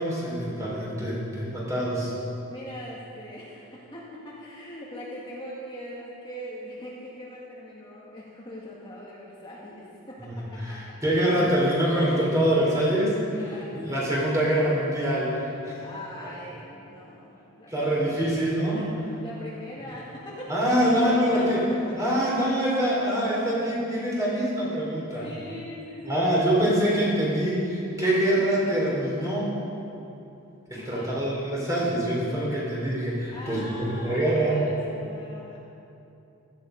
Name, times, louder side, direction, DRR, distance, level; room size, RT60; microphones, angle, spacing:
voice 1, 0.0-2.1 10.2-10.3 10.6-13.2 13.7-15.8 17.7-18.8 20.5-21.6 21.9-25.3 26.1-29.5 30.7-34.6, right 1 dB, 15° right, -5 dB, 3.8 m, -25 dB
voice 2, 2.5-10.8 11.1-11.6 12.6-12.7 13.3-14.0 15.8-18.3 18.8-18.9 19.2-22.7 24.9-27.3 27.8-28.3 30.8-31.1 33.3-35.6, left 1 dB, 20° left, -6 dB, 1.9 m, -41 dB
16.5 x 13.5 x 5.2 m, 2.8 s
head